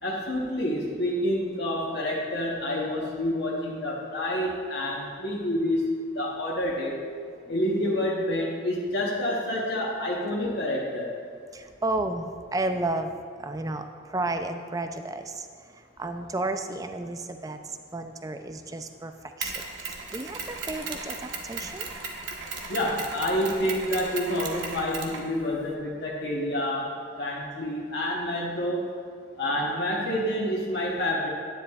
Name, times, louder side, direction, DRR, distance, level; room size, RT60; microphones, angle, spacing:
voice 1, 0.0-6.9 7.5-11.2 22.7-29.0 29.4-31.3, left 1 dB, 60° left, -4 dB, 0.9 m, -28 dB
voice 2, 11.5-13.1 13.4-15.5 16.0-19.1 19.4-19.5 19.8-21.9, right 2 dB, 20° right, 7 dB, 0.3 m, -32 dB
Mechanisms, 19.4-25.7, right 4 dB, 75° right, 1.0 m, -36 dB
10.0 x 9.8 x 2.4 m, 2.1 s
head